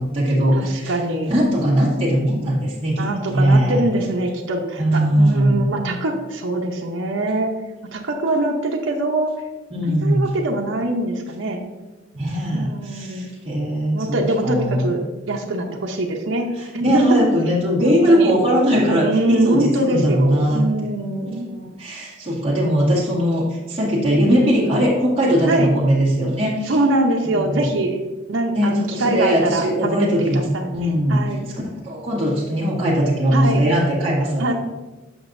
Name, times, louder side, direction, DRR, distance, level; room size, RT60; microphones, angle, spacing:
voice 1, 0.0-1.0 1.3-3.1 3.3-3.8 4.8-5.6 9.7-10.3 12.1-15.0 16.6-20.7 20.9-26.8 27.4-27.6 28.5-30.4 30.7-31.3 31.8-34.5, equal, 30° right, -8 dB, 1.7 m, -20 dB
voice 2, 0.5-1.3 3.0-7.5 7.9-9.3 9.8-11.6 12.5-13.3 13.9-16.5 16.7-17.2 17.8-18.3 19.0-21.5 25.4-25.7 26.7-28.0 28.3-30.7 31.1-31.5 33.3-33.6 34.4-34.5, right 2 dB, 85° right, 1 dB, 0.8 m, -23 dB
7.9 x 6.0 x 2.6 m, 1.2 s
head